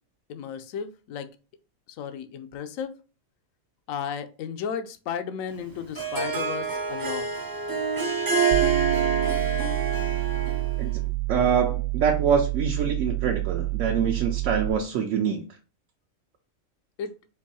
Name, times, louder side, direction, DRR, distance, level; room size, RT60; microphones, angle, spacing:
voice 1, 0.3-1.3 1.9-3.0 3.9-7.3 17.0-17.2, left 7 dB, 75° left, 1.0 m, -34 dB
Harp, 5.6-10.9, right 5 dB, 30° right, 0.4 m, -26 dB
sound 1, 8.5-14.7, right 19 dB, 90° right, 1.1 m, -28 dB
voice 2, 11.3-15.4, right 7 dB, 70° right, 1.0 m, -25 dB
4.5 x 2.6 x 4.1 m
omnidirectional pair, 1.4 m